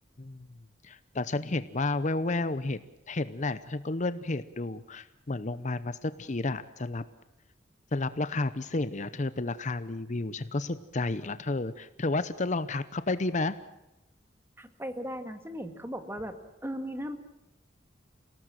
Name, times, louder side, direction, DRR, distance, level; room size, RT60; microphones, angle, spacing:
voice 1, 0.8-7.0 7.9-13.6, left 2 dB, 40° left, 13 dB, 0.8 m, -31 dB
voice 2, 14.6-16.4 16.6-17.2, equal, 15° right, 8 dB, 2.0 m, -37 dB
29.0 x 18.5 x 7.6 m, 0.94 s
head